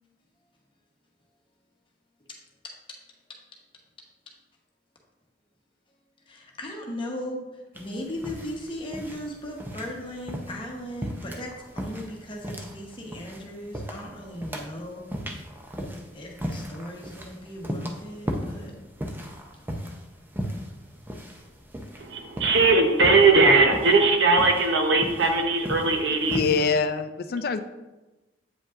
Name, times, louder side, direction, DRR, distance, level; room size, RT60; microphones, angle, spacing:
voice 1, 2.6-3.0 6.3-7.5 7.7-15.1 16.1-18.7, left 1 dB, 30° left, -1 dB, 1.0 m, -37 dB
sound 1, 7.7-26.7, equal, 10° right, 0.6 m, -37 dB
voice 2, 22.0-26.4, right 3 dB, 85° right, 3 dB, 0.9 m, -19 dB
voice 3, 26.3-27.6, left 5 dB, 55° left, 10 dB, 0.4 m, -24 dB
8.2 x 5.2 x 2.5 m, 1.1 s
head